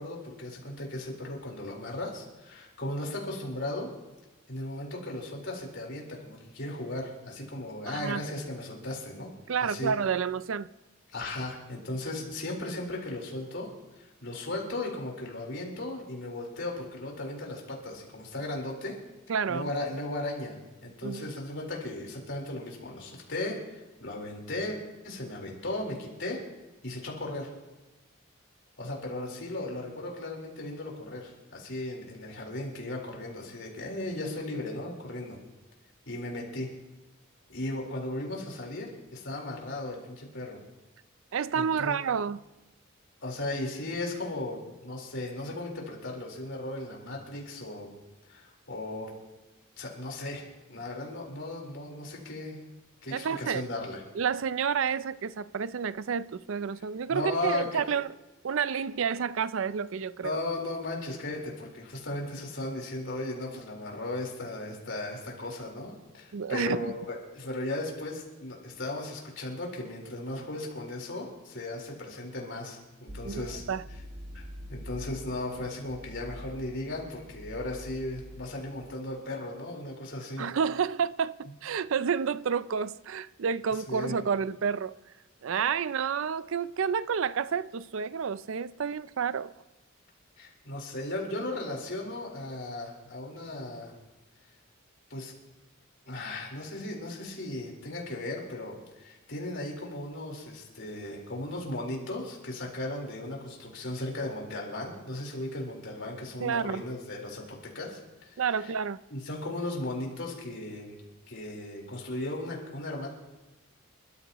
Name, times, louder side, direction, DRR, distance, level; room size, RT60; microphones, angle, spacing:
voice 1, 0.0-3.9 4.5-9.3 9.6-9.9 11.1-13.7 14.0-19.0 19.5-24.8 25.0-26.4 26.8-27.5 28.8-35.4 36.1-36.7 37.5-40.6 41.5-42.0 43.2-47.9 48.3-49.1 49.8-52.6 53.0-54.0 57.1-58.0 60.2-73.6 74.3-80.5 83.7-84.1 85.5-85.6 90.4-93.9 95.1-95.3 96.1-108.7 109.1-110.9 111.3-113.1, left 2 dB, 60° left, 4.1 m, -36 dB
voice 2, 7.9-8.2 9.5-10.7 19.3-19.7 21.0-21.3 41.3-42.4 53.1-53.7 54.2-58.1 58.4-60.4 66.3-66.9 73.2-73.8 80.4-84.9 85.4-89.5 106.4-106.8 108.4-109.0, right 6 dB, 65° right, 0.4 m, -30 dB
sound 1, 73.1-78.9, equal, 35° right, 1.1 m, -45 dB
28.5 x 13.5 x 3.0 m
head